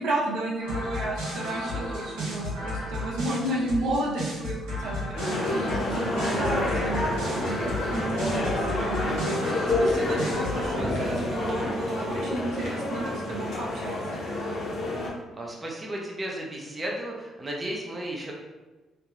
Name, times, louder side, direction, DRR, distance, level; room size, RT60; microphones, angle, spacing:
voice 1, 0.0-5.5 5.9-14.2, right 1 dB, 65° right, -3 dB, 0.7 m, -32 dB
sound 1, 0.6-10.7, equal, 85° right, 1.0 m, -33 dB
sound 2, 5.1-15.1, left 1 dB, 60° left, 0.8 m, -28 dB
voice 2, 15.3-18.3, right 1 dB, 25° right, -2 dB, 0.7 m, -34 dB
3.2 x 2.2 x 2.6 m, 1.2 s
hypercardioid pair, 50°, 0 cm